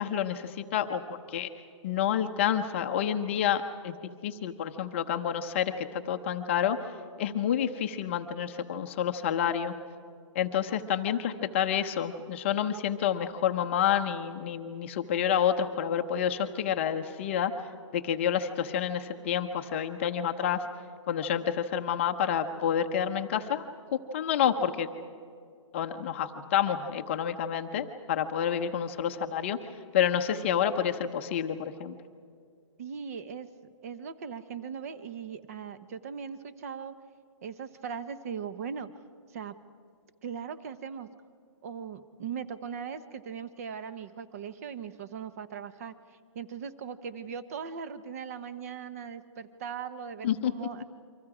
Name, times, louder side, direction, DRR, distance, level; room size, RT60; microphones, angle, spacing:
voice 1, 0.0-1.5 1.8-4.0 4.2-6.8 7.2-9.7 10.3-17.5 17.9-20.6 21.1-23.6 23.9-24.9 25.7-29.6 29.9-32.0 50.2-50.5, left 9 dB, 25° left, 6 dB, 0.8 m, -29 dB
voice 2, 32.8-33.5 33.8-36.9 37.4-38.9 39.3-39.5 40.2-41.1 41.6-45.9 46.3-50.8, right 7 dB, 30° right, 12 dB, 0.9 m, -39 dB
29.0 x 24.5 x 4.9 m, 2.2 s
hypercardioid pair, 170°, 16 cm